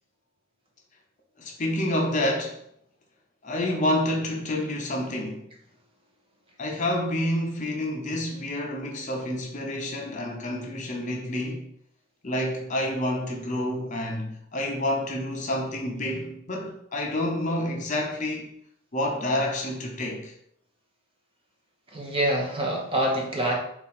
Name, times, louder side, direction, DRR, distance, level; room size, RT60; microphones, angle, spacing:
voice 1, 1.4-2.6 3.4-5.4 6.6-11.7 12.2-18.5 18.9-20.3, left 1 dB, 35° left, 0.6 m, -28 dB
voice 2, 21.9-23.5, right 1 dB, 25° right, 0.8 m, -26 dB
4.2 x 2.5 x 4.1 m
head